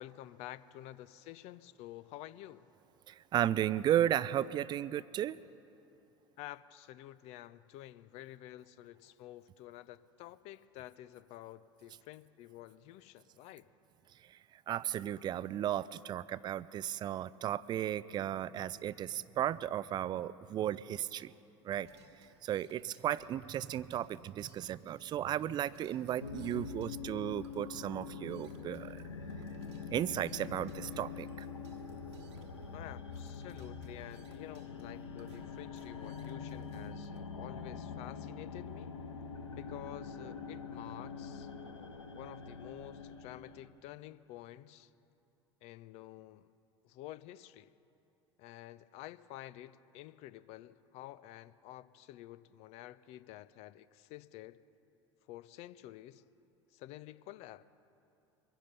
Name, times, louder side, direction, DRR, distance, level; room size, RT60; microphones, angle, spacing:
voice 1, 0.0-2.7 6.4-13.6 32.7-38.9 39.5-44.9 45.6-46.4 46.8-47.7 48.4-54.6 55.3-56.2 56.7-57.6, left 14 dB, 45° left, 16 dB, 0.5 m, -50 dB
voice 2, 3.1-5.4 14.7-21.3 21.6-21.9 22.4-29.0 29.9-31.5, right 11 dB, 30° right, 18 dB, 0.4 m, -34 dB
sound 1, 21.7-37.2, right 3 dB, 65° right, 1.2 m, -63 dB
sound 2, 26.2-43.7, left 5 dB, 75° left, 0.9 m, -45 dB
23.5 x 10.0 x 5.5 m, 2.8 s
figure-of-eight pair, 75°, 15 cm